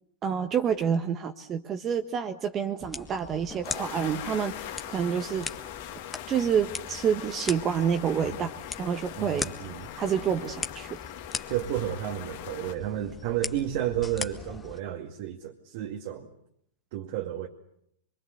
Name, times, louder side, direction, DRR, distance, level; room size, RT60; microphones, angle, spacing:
voice 1, 0.2-5.5 6.3-8.5 8.8-9.5 10.0-11.0, right 7 dB, 30° right, 7 dB, 1.4 m, -28 dB
sound 1, 2.8-14.8, left 4 dB, 15° left, 1.6 m, -40 dB
sound 2, 3.6-12.7, left 11 dB, 60° left, 2.2 m, -41 dB
voice 2, 9.2-9.9 11.5-16.3 16.9-17.5, right 11 dB, 55° right, 2 dB, 2.1 m, -32 dB
25.0 x 23.0 x 8.0 m, 0.75 s
hypercardioid pair, 100°, 0 cm